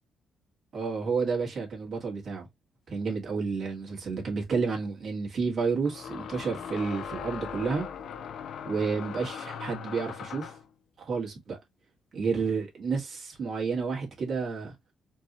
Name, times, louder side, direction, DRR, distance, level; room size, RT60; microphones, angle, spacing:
voice 1, 0.7-2.5 2.9-7.9 8.6-10.6 11.0-11.6 12.1-14.7, right 5 dB, 55° right, 1.9 m, -30 dB
sound 1, 3.9-4.0 5.9-10.7, left 7 dB, 70° left, 0.6 m, -39 dB
4.5 x 2.7 x 2.9 m
cardioid pair, 90°, 0 cm